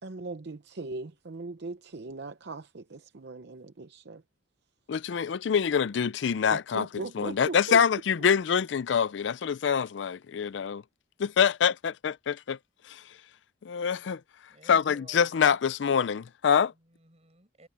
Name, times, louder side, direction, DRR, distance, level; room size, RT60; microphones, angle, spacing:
voice 1, 0.0-4.2 6.5-7.8, right 3 dB, 65° right, 0.8 m, -39 dB
voice 2, 4.9-6.9 7.2-10.8 11.2-12.6 12.8-13.0 13.6-14.2 14.7-16.7, left 7 dB, 70° left, 0.4 m, -25 dB
voice 3, 14.5-15.4 16.7-17.7, right 2 dB, 35° right, 6.9 m, -57 dB
head